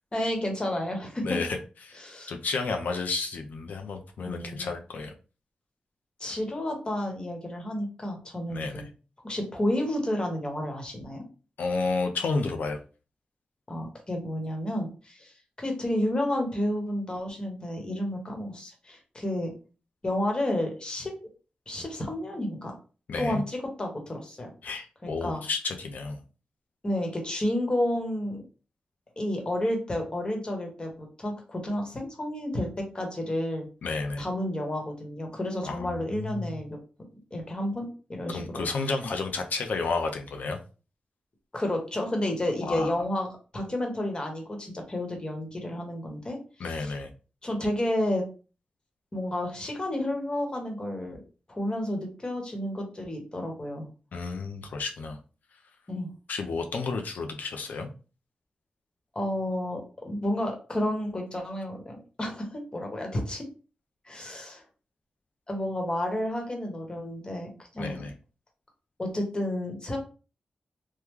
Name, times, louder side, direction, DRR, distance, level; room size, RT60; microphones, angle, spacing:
voice 1, 0.1-1.4 2.0-2.3 4.2-4.7 6.2-8.9 9.2-11.2 13.7-19.5 20.0-21.1 21.7-22.7 23.2-24.5 25.0-25.4 26.8-28.4 29.2-33.7 34.2-36.8 37.3-38.7 41.5-43.3 43.5-46.4 46.8-46.9 47.4-48.2 49.1-51.2 51.5-53.9 55.9-56.1 59.1-63.4 64.1-64.6 65.5-68.0 69.0-70.0, left 1 dB, 30° left, 2 dB, 1.1 m, -31 dB
voice 2, 1.2-1.6 1.8-2.0 2.3-5.1 6.2-6.4 8.5-8.8 11.6-12.8 23.1-23.4 24.6-26.2 33.8-34.2 35.6-36.6 38.3-40.6 42.6-43.0 46.6-47.1 54.1-55.2 56.3-57.9 67.8-68.1, left 4 dB, 80° left, 5 dB, 0.5 m, -31 dB
3.1 x 2.1 x 3.6 m, 0.35 s
cardioid pair, 75°, 3 cm